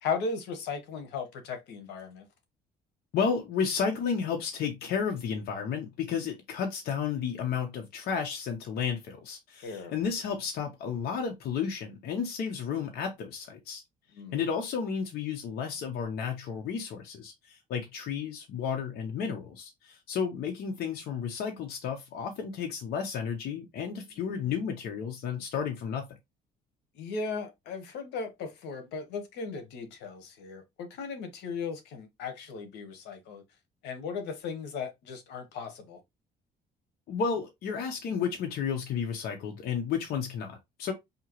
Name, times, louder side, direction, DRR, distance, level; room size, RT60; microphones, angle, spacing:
voice 1, 0.0-2.3 9.6-9.9 14.1-14.4 24.2-24.5 26.9-33.4 33.8-36.0, left 5 dB, 85° left, 1.3 m, -37 dB
voice 2, 3.1-13.8 14.3-26.1 37.1-40.9, left 6 dB, 65° left, 1.0 m, -32 dB
5.5 x 2.9 x 3.0 m
cardioid pair, 110°, 17 cm